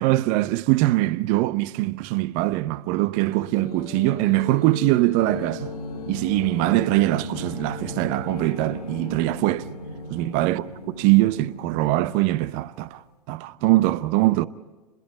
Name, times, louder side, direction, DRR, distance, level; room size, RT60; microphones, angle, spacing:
voice 1, 0.0-5.7 6.1-9.7 10.1-10.6 10.9-13.0 13.3-14.5, right 17 dB, 40° right, 0.7 m, -22 dB
sound 1, 3.3-10.7, left 8 dB, 60° left, 1.3 m, -40 dB
sound 2, 5.2-12.8, left 1 dB, 85° left, 4.6 m, -37 dB
28.5 x 21.5 x 4.9 m
figure-of-eight pair, 100°, 21 cm